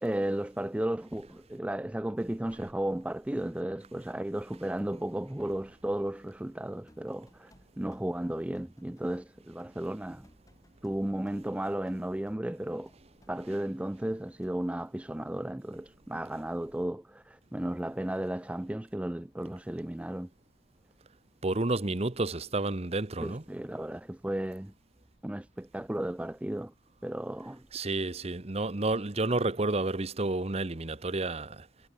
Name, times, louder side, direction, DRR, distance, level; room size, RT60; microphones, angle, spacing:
voice 1, 0.0-10.3 10.8-12.9 13.3-20.3 23.2-24.7 25.2-26.7 27.0-27.7, right 1 dB, 5° right, 0.3 m, -34 dB
sound 1, 6.9-14.8, left 1 dB, 20° left, 3.7 m, -63 dB
voice 2, 21.4-23.4 27.7-31.7, right 2 dB, 35° right, 0.9 m, -30 dB
head